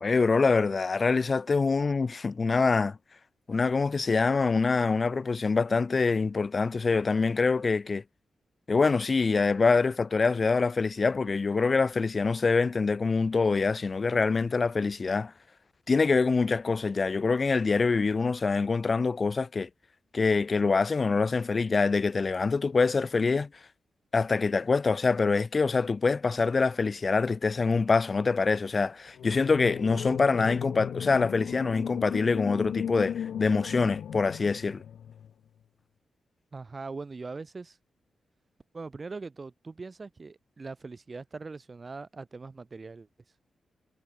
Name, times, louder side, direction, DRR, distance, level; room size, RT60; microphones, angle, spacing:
voice 1, 0.0-3.0 3.5-8.0 8.7-15.3 15.9-19.7 20.1-23.5 24.1-34.8, left 4 dB, 40° left, 0.5 m, -25 dB
sound 1, 29.2-35.3, left 9 dB, 85° left, 2.7 m, -36 dB
voice 2, 36.5-37.8 38.7-43.1, right 4 dB, 35° right, 3.6 m, -41 dB
cardioid pair, 90°, 0 cm